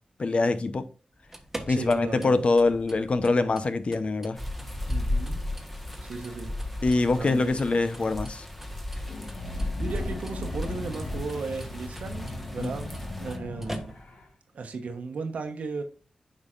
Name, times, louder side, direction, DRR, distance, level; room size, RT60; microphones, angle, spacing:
voice 1, 0.2-0.9 1.7-4.4 6.8-8.4 12.6-12.7, left 3 dB, 55° left, 0.8 m, -24 dB
sound 1, 1.1-14.3, right 1 dB, 10° right, 1.4 m, -46 dB
voice 2, 1.7-2.5 4.9-5.4 6.0-6.5 7.1-7.6 9.8-13.9 14.5-15.8, right 4 dB, 90° right, 1.0 m, -35 dB
sound 2, 4.4-13.4, left 1 dB, 10° left, 1.3 m, -35 dB
sound 3, 9.0-14.3, left 2 dB, 80° left, 1.4 m, -38 dB
8.7 x 5.5 x 2.5 m
cardioid pair, 55°, 2 cm